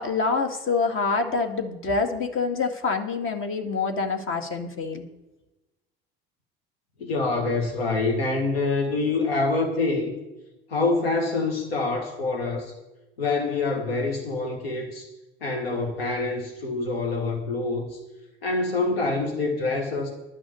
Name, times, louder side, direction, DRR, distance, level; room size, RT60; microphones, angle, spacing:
voice 1, 0.0-5.0, left 4 dB, 45° left, 5 dB, 2.0 m, -26 dB
voice 2, 7.0-10.1 10.7-12.7 13.2-15.1 15.4-18.0 18.4-20.1, left 3 dB, 85° left, 2 dB, 1.6 m, -26 dB
11.5 x 6.2 x 8.4 m, 1.0 s
hypercardioid pair, 65°, 29 cm